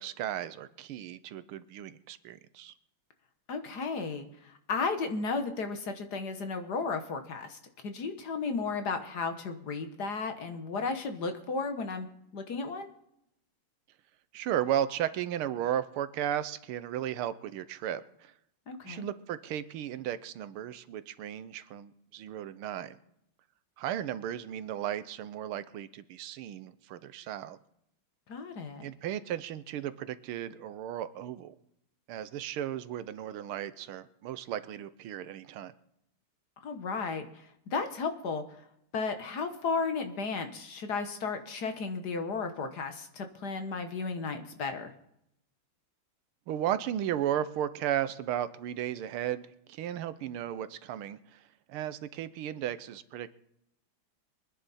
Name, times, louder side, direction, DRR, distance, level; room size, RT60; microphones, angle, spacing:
voice 1, 0.0-2.7 14.3-18.3 18.8-23.0 23.8-27.6 28.8-31.5 32.1-35.7 46.5-51.4 51.7-53.3, right 11 dB, 80° right, 13 dB, 1.7 m, -35 dB
voice 2, 3.5-12.1 12.3-12.9 18.7-19.1 28.3-28.9 36.6-38.4 38.9-44.9, left 4 dB, 55° left, 7 dB, 1.6 m, -34 dB
24.0 x 10.0 x 4.2 m, 0.78 s
omnidirectional pair, 2.4 m